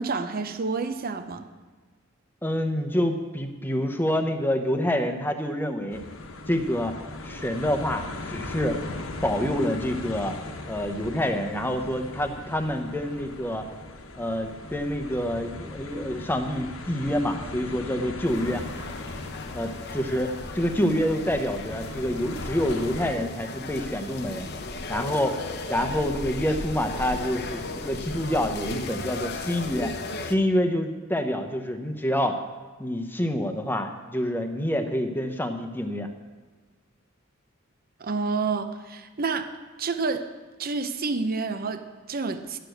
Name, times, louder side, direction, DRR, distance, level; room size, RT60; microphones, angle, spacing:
voice 1, 0.0-1.5 38.0-39.5 39.8-40.3 40.6-42.6, right 4 dB, 45° right, 9 dB, 0.7 m, -29 dB
voice 2, 2.4-6.0 6.5-7.0 7.2-8.8 9.2-10.3 10.7-13.7 14.2-18.7 19.5-24.5 24.9-25.4 25.7-29.9 30.2-32.4 32.8-36.1, equal, 10° left, 6 dB, 0.8 m, -27 dB
sound 1, 5.9-23.1, left 2 dB, 70° left, 1.1 m, -39 dB
sound 2, 18.2-30.3, left 2 dB, 50° left, 0.7 m, -36 dB
11.0 x 6.7 x 7.9 m, 1.4 s
head